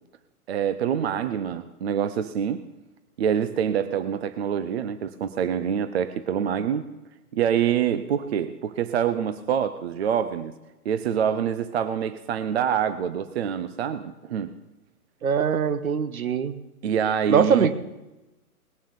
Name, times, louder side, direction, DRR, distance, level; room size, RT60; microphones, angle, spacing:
voice 1, 0.5-2.6 3.2-6.8 7.3-10.5 10.8-14.5 16.8-17.7, right 8 dB, 45° right, 12 dB, 0.7 m, -26 dB
voice 2, 15.2-16.6 17.3-17.7, right 7 dB, 65° right, 13 dB, 1.2 m, -22 dB
19.5 x 7.3 x 7.1 m, 1.0 s
figure-of-eight pair, 125°, 45 cm